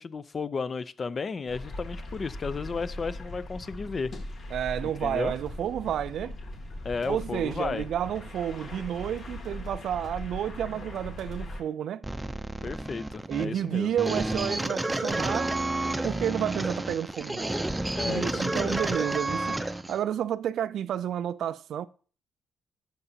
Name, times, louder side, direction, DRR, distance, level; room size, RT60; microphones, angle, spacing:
voice 1, 0.0-4.1 4.8-5.3 6.8-7.8 12.6-13.9 17.9-18.8, left 4 dB, 40° left, 0.5 m, -33 dB
sound 1, 1.5-11.6, left 1 dB, 55° left, 2.3 m, -40 dB
voice 2, 4.5-6.4 7.0-12.0 13.3-15.5 16.0-17.7 18.0-21.9, right 10 dB, 70° right, 0.3 m, -31 dB
sound 2, 12.0-20.0, right 2 dB, 10° right, 0.6 m, -31 dB
12.0 x 5.8 x 2.8 m
cardioid pair, 90°, 0 cm